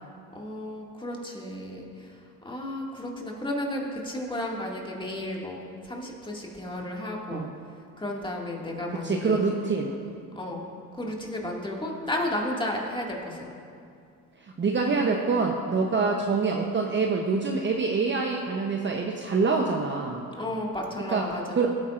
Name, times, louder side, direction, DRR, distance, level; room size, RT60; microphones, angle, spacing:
voice 1, 0.3-7.4 8.0-9.4 10.3-10.7 10.9-13.5 20.3-21.6, left 1 dB, 10° left, -2 dB, 2.1 m, -33 dB
voice 2, 9.0-9.9 14.4-20.2 21.1-21.3 21.5-21.7, right 4 dB, 25° right, 1 dB, 0.8 m, -25 dB
17.5 x 8.8 x 2.5 m, 2.4 s
supercardioid pair, 80°, 42 cm